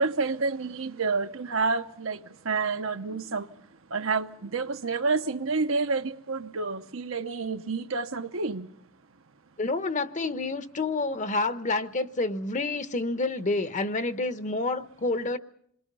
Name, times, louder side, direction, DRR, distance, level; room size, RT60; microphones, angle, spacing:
voice 1, 0.0-2.2 2.5-3.4 3.9-8.7, right 4 dB, 70° right, 0.9 m, -29 dB
voice 2, 9.6-15.4, left 3 dB, 35° left, 0.9 m, -28 dB
27.5 x 22.0 x 5.5 m
head